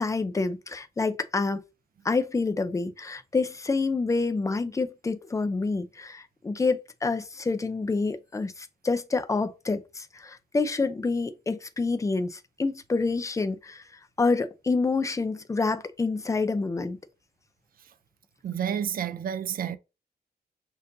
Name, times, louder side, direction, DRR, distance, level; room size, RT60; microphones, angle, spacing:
voice 1, 0.0-1.6 2.0-13.8 14.2-17.0, left 3 dB, 20° left, 0.4 m, -27 dB
voice 2, 18.4-19.8, right 8 dB, 60° right, 0.4 m, -30 dB
6.4 x 2.6 x 2.6 m
wide cardioid pair, 120°, 17 cm